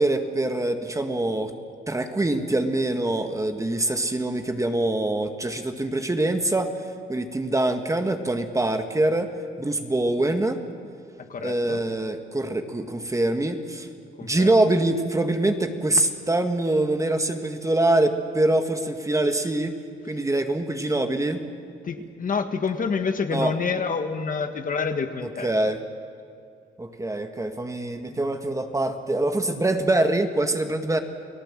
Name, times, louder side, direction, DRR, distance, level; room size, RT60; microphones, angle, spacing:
voice 1, 0.0-1.5 1.9-6.7 7.1-9.3 9.6-10.6 11.4-13.9 14.2-19.7 20.1-21.4 23.3-23.5 25.2-25.8 26.8-31.0, right 2 dB, 15° right, 6 dB, 1.8 m, -24 dB
voice 2, 11.3-11.8 14.2-14.6 21.8-25.5 28.1-28.2, left 5 dB, 45° left, 7 dB, 1.7 m, -28 dB
29.5 x 18.0 x 7.6 m, 2.3 s
cardioid pair, 90°, 20 cm